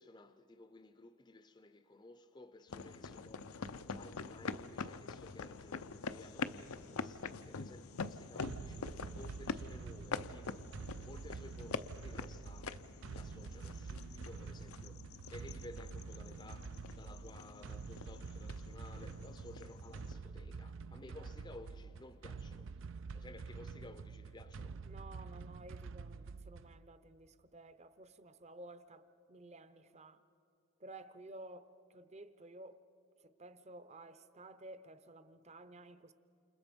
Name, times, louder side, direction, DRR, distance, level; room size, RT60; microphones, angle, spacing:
voice 1, 0.0-22.7 23.1-24.8, left 2 dB, 20° left, 0.6 m, -56 dB
sound 1, 2.7-20.1, left 4 dB, 85° left, 0.7 m, -45 dB
voice 2, 7.9-8.4 24.8-30.2 30.8-32.8 33.2-36.1, right 2 dB, 30° right, 0.8 m, -54 dB
sound 2, 8.4-26.8, right 4 dB, 60° right, 0.5 m, -47 dB
29.5 x 28.0 x 5.3 m
head